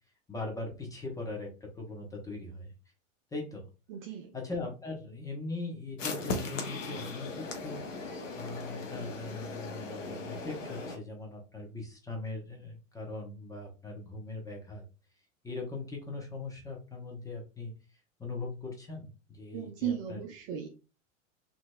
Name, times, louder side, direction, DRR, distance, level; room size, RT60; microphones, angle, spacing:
voice 1, 0.3-2.7 3.3-3.7 4.3-8.1 8.4-14.8 15.4-17.7 18.2-20.2, left 3 dB, 10° left, 0 dB, 0.8 m, -40 dB
voice 2, 3.9-4.3 19.5-20.7, right 9 dB, 35° right, 3 dB, 0.4 m, -36 dB
sound 1, 6.0-11.0, left 3 dB, 70° left, 0.8 m, -38 dB
2.9 x 2.6 x 2.2 m, 0.31 s
figure-of-eight pair, 95°, 39 cm